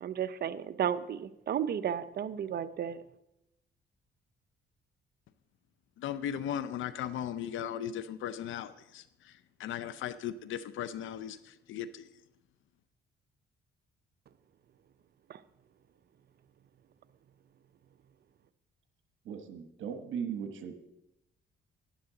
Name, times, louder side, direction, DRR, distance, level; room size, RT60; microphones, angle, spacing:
voice 1, 0.0-3.0, right 9 dB, 55° right, 13 dB, 0.6 m, -33 dB
voice 2, 6.0-12.1, left 9 dB, 80° left, 14 dB, 0.6 m, -37 dB
voice 3, 19.2-20.8, right 7 dB, 75° right, 7 dB, 1.2 m, -38 dB
11.5 x 10.5 x 3.9 m, 0.88 s
cardioid pair, 90°, 20 cm